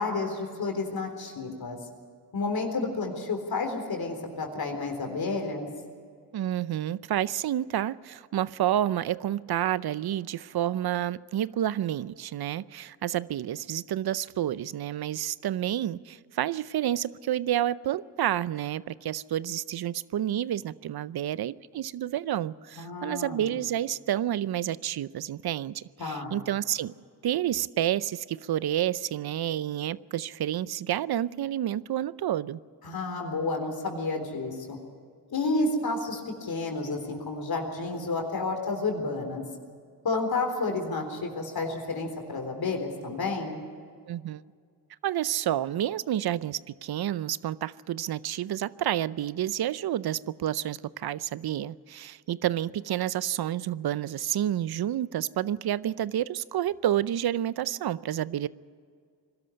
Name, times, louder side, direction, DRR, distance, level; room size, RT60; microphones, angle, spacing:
voice 1, 0.0-1.8 2.3-5.7 22.8-23.5 26.0-26.4 32.8-34.8 35.3-39.4 40.0-43.6, left 3 dB, 55° left, 3 dB, 3.9 m, -30 dB
voice 2, 6.3-26.9 27.2-32.6 44.1-44.4 45.0-58.5, right 11 dB, 60° right, 18 dB, 0.7 m, -29 dB
21.5 x 13.0 x 9.9 m, 2.1 s
cardioid pair, 65°, 42 cm